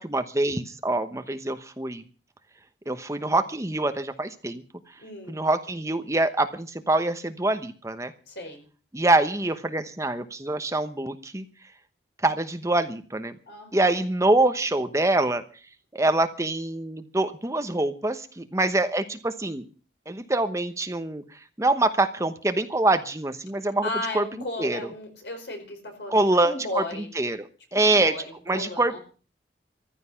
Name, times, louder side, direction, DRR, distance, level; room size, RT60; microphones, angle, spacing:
voice 1, 0.0-2.0 2.9-4.6 5.3-8.1 8.9-11.4 12.2-13.4 13.7-15.4 15.9-19.6 20.1-21.2 21.6-23.9 24.1-24.2 24.6-24.8 26.1-26.8 27.2-28.1 28.5-29.0, right 2 dB, 15° right, 9 dB, 1.0 m, -25 dB
voice 2, 5.0-5.4 8.3-8.6 13.5-13.9 23.6-27.1 27.7-29.0, left 2 dB, 75° left, 4 dB, 5.0 m, -35 dB
14.5 x 13.5 x 5.7 m, 0.39 s
head